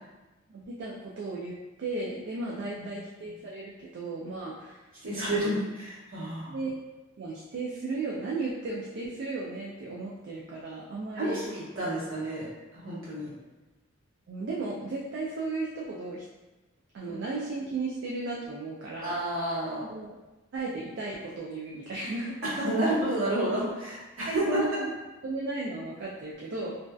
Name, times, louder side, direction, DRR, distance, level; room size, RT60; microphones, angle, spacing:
voice 1, 0.5-1.5 1.8-4.8 5.2-5.6 6.5-6.8 7.2-11.4 14.3-16.2 16.9-19.2 19.9-20.1 20.5-22.9 24.3-24.9 25.2-26.8, right 3 dB, 55° right, -4 dB, 0.3 m, -35 dB
voice 2, 5.0-6.6 11.2-12.5 12.7-13.3 17.1-17.2 19.0-19.8 22.6-24.6, right 1 dB, 70° right, -9 dB, 1.2 m, -30 dB
2.6 x 2.2 x 2.2 m, 1.1 s
head